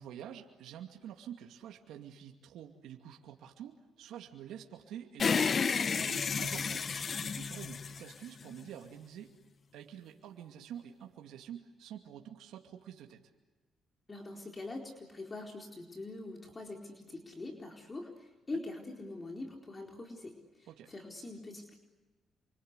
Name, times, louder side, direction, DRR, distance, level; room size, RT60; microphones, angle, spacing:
voice 1, 0.0-9.4 9.7-13.2 18.5-18.6 20.7-20.9, right 10 dB, 85° right, 3 dB, 2.4 m, -48 dB
Fan Switching off edited (power down), 5.2-8.7, left 5 dB, 45° left, 0.9 m, -32 dB
voice 2, 14.1-21.8, left 2 dB, 25° left, 2 dB, 4.3 m, -44 dB
28.5 x 25.0 x 8.2 m, 1.2 s
cardioid pair, 90°, 0 cm